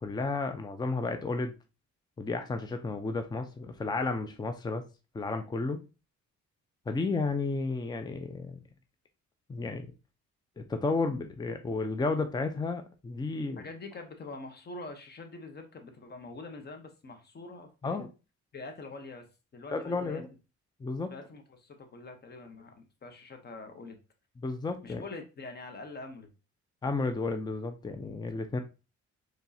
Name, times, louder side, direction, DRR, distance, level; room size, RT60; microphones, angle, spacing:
voice 1, 0.0-1.5 2.2-4.8 5.1-5.8 6.9-8.6 9.5-9.9 10.6-13.6 17.8-18.1 19.7-20.3 20.8-21.1 24.4-25.0 26.8-28.6, left 3 dB, 15° left, 0.5 m, -32 dB
voice 2, 13.6-18.0 18.5-19.3 19.5-20.2 21.1-24.0 24.8-26.3, left 3 dB, 35° left, 0.9 m, -45 dB
4.3 x 3.2 x 2.7 m
cardioid pair, 90°, 30 cm